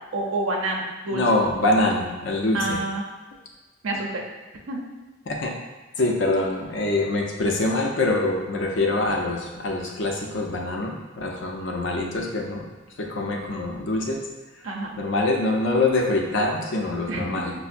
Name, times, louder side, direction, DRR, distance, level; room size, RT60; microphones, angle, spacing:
voice 1, 0.1-1.2 2.5-3.1 3.8-4.2 4.7-4.8 14.6-15.0 17.1-17.2, right 2 dB, 85° right, -1 dB, 0.6 m, -27 dB
voice 2, 1.1-2.8 5.3-5.5 6.0-12.7 13.0-14.2 15.0-17.5, left 2 dB, 65° left, 0 dB, 0.6 m, -24 dB
5.6 x 2.0 x 2.5 m, 1.2 s
head